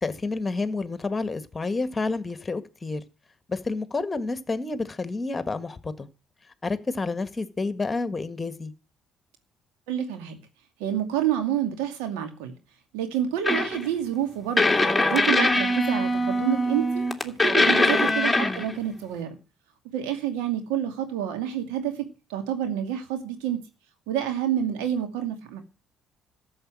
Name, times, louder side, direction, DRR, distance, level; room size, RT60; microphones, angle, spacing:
voice 1, 0.0-3.0 3.5-6.1 6.6-8.7 18.4-18.6, left 3 dB, 25° left, 1.8 m, -29 dB
voice 2, 9.9-10.4 10.8-12.5 12.9-14.8 15.1-19.4 19.9-23.6 24.1-25.6, right 10 dB, 80° right, 2.4 m, -28 dB
sound 1, 13.4-13.9 14.6-18.7, left 1 dB, 10° left, 2.5 m, -22 dB
13.5 x 7.2 x 7.6 m
hypercardioid pair, 55°, 0 cm